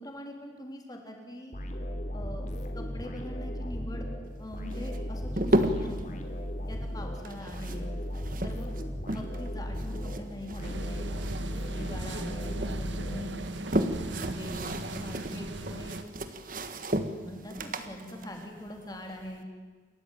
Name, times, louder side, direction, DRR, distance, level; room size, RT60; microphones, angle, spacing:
voice 1, 0.0-1.6 2.1-4.1 4.4-6.2 6.7-7.9 8.4-8.7 9.1-11.1 11.8-13.4 13.9-16.0 17.2-19.5, left 1 dB, 20° left, 2 dB, 3.8 m, -43 dB
sound 1, 1.5-13.7, equal, 40° left, 3.4 m, -36 dB
sound 2, 4.7-6.0 7.1-9.5 9.8-11.6 11.9-12.8 13.3-19.4, right 1 dB, 45° right, 1.6 m, -33 dB
sound 3, 10.6-16.0, right 2 dB, 85° right, 1.7 m, -38 dB
29.0 x 14.0 x 9.2 m, 1.5 s
head